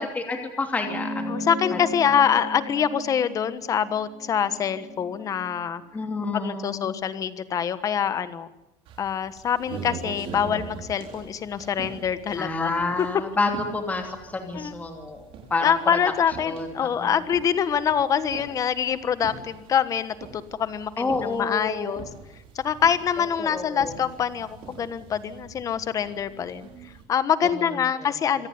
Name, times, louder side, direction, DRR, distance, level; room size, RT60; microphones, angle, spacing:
voice 1, 0.0-2.2 5.9-6.9 12.4-15.2 15.5-16.0 16.4-17.2 21.0-22.0 23.4-24.0 28.0-28.1, left 3 dB, 10° left, 4 dB, 2.9 m, -29 dB
sound 1, 0.8-5.6, left 1 dB, 85° right, 7.6 m, -36 dB
voice 2, 1.3-5.8 6.3-8.5 9.0-12.7 13.0-13.1 14.5-14.7 15.6-22.0 22.5-28.5, left 8 dB, 30° left, 13 dB, 1.3 m, -25 dB
sound 2, 8.9-27.0, right 5 dB, 50° right, 6.2 m, -43 dB
26.0 x 17.5 x 9.7 m, 0.94 s
cardioid pair, 170°, 12 cm